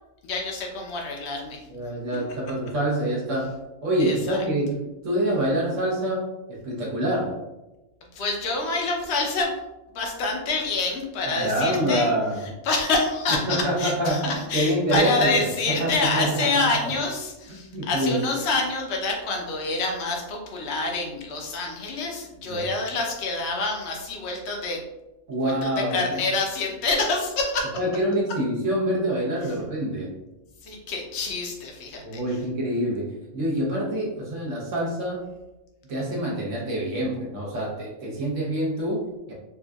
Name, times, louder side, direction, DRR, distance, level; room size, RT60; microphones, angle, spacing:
voice 1, 0.3-1.6 4.0-4.4 8.1-9.5 9.9-12.1 12.6-24.8 25.4-27.7 30.6-32.0, left 3 dB, 55° left, 1 dB, 0.9 m, -27 dB
voice 2, 1.7-7.4 11.2-12.5 13.3-16.9 17.7-18.3 22.4-22.7 25.3-26.2 27.8-30.1 32.0-35.2 35.9-39.3, right 1 dB, 60° right, -4 dB, 1.2 m, -26 dB
4.4 x 2.5 x 2.3 m, 1.0 s
omnidirectional pair, 1.5 m